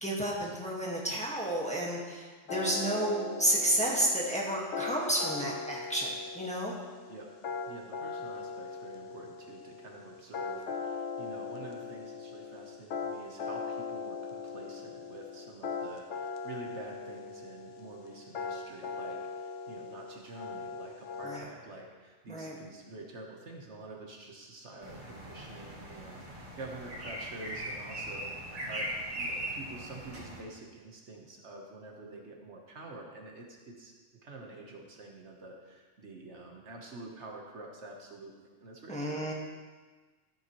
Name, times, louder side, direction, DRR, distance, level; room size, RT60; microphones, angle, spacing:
voice 1, 0.0-6.7 21.2-21.5 22.3-22.5 38.9-39.3, right 1 dB, 5° left, -4 dB, 1.5 m, -31 dB
sound 1, 2.5-21.4, left 5 dB, 70° left, 1.2 m, -40 dB
voice 2, 7.7-33.9 34.2-38.3 38.6-39.3, right 2 dB, 65° right, 0 dB, 1.4 m, -47 dB
sound 2, 24.8-30.4, right 1 dB, 80° right, 2.2 m, -40 dB
13.5 x 7.9 x 3.1 m, 1.4 s
omnidirectional pair, 1.3 m